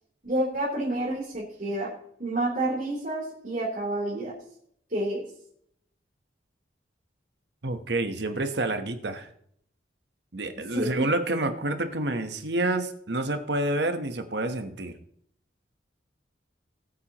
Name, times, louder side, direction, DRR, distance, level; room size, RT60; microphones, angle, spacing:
voice 1, 0.2-1.9 2.2-4.3 4.9-5.2 10.7-11.1, right 1 dB, 45° right, -5 dB, 3.5 m, -29 dB
voice 2, 7.6-9.3 10.3-15.0, right 2 dB, 65° right, 7 dB, 1.2 m, -28 dB
20.0 x 8.9 x 3.0 m, 0.68 s
head